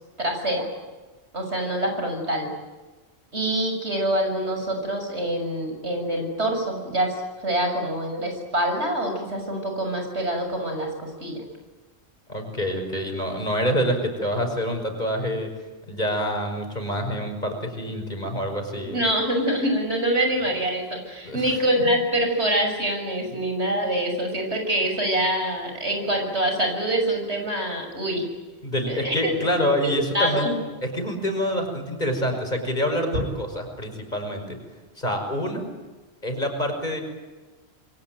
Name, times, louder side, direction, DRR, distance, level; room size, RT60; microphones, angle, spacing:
voice 1, 0.2-0.7 1.3-2.5 3.3-11.4 18.9-28.3 28.9-29.4 30.1-30.6 33.1-33.2, right 1 dB, 85° right, 3 dB, 6.8 m, -25 dB
voice 2, 12.3-15.5 15.9-19.0 21.2-21.4 28.6-30.5 30.8-34.6 35.0-35.7 36.2-37.0, equal, 40° left, 4 dB, 5.7 m, -26 dB
27.5 x 23.0 x 9.2 m, 1.3 s
omnidirectional pair, 1.1 m